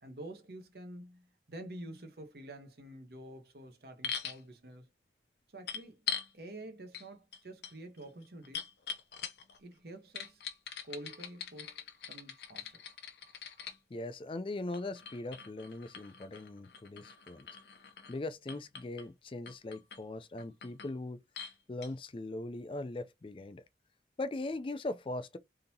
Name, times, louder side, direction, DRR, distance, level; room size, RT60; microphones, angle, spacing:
voice 1, 0.0-4.9 5.5-6.0 6.3-8.7 9.6-10.4 10.8-12.8, right 1 dB, 65° right, 0.9 m, -48 dB
sound 1, 4.0-4.4 5.7-6.3 6.9-7.1 7.3-9.6 10.1-13.8 14.7-18.2 18.5-19.1 19.5-20.0 20.4-20.9 21.3-21.5 21.8-21.9, left 7 dB, 75° left, 0.6 m, -42 dB
voice 2, 13.9-17.5 18.1-21.2 21.7-23.6 24.2-25.4, left 2 dB, 30° left, 0.4 m, -40 dB
3.8 x 2.8 x 2.7 m
head